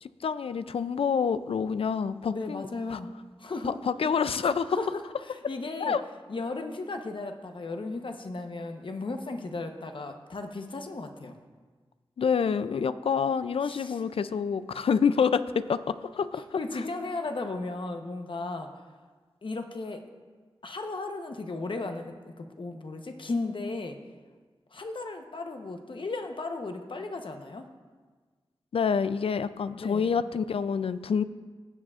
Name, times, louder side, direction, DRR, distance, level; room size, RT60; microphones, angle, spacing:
voice 1, 0.0-3.0 3.7-4.8 5.8-6.0 12.2-16.6 28.7-31.2, left 6 dB, 75° left, 14 dB, 0.4 m, -27 dB
voice 2, 2.3-3.1 3.4-3.8 4.7-6.0 6.3-11.4 13.6-14.0 16.3-18.8 19.4-20.0 20.6-24.0 24.7-27.7 29.8-30.1, left 3 dB, 60° left, 5 dB, 0.9 m, -35 dB
16.5 x 7.3 x 2.4 m, 1.4 s
cardioid pair, 60°, 10 cm